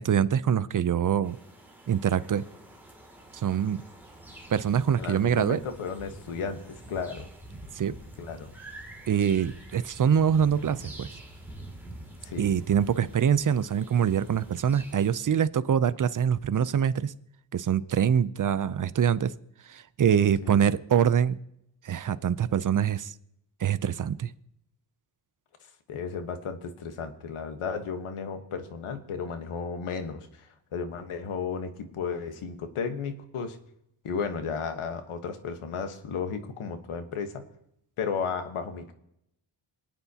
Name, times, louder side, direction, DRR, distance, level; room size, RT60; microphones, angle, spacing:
voice 1, 0.0-1.4 1.9-2.4 3.3-3.8 4.5-5.6 7.7-7.9 9.1-11.1 12.4-17.1 17.5-19.3 19.7-21.4 21.8-23.1 23.6-24.3, right 8 dB, 40° right, 15 dB, 0.6 m, -24 dB
sound 1, 1.2-15.1, right 1 dB, 5° right, 2.6 m, -46 dB
voice 2, 5.0-7.3 8.2-8.5 12.2-12.5 20.4-20.6 25.9-33.6 34.0-37.4 38.0-38.9, left 5 dB, 80° left, 7 dB, 1.4 m, -34 dB
27.5 x 9.2 x 2.9 m, 0.79 s
wide cardioid pair, 110°, 49 cm